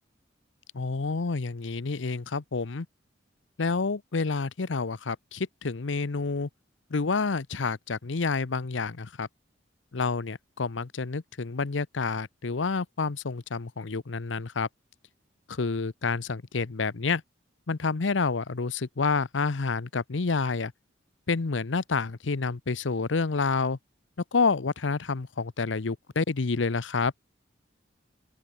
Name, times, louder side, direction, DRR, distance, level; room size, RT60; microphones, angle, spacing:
voice 1, 0.7-2.9 3.6-6.5 6.9-9.3 9.9-14.7 15.5-17.2 17.7-20.7 21.3-23.8 24.3-27.1, left 4 dB, 80° left, 0.8 m, -28 dB
open air
head